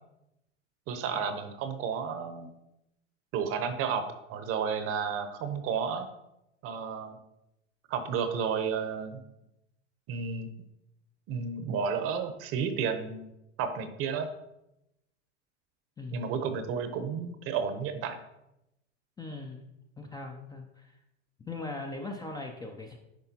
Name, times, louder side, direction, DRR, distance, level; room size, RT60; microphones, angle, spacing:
voice 1, 0.9-2.5 3.3-6.1 6.6-7.2 7.9-9.2 10.1-10.5 11.3-13.2 13.6-14.3 16.1-18.2, right 6 dB, 40° right, 9 dB, 0.8 m, -32 dB
voice 2, 16.0-16.3 19.2-19.7 20.0-21.0 21.4-23.0, left 2 dB, 10° left, 2 dB, 0.4 m, -40 dB
9.9 x 3.5 x 2.8 m, 0.87 s
hypercardioid pair, 105°, 36 cm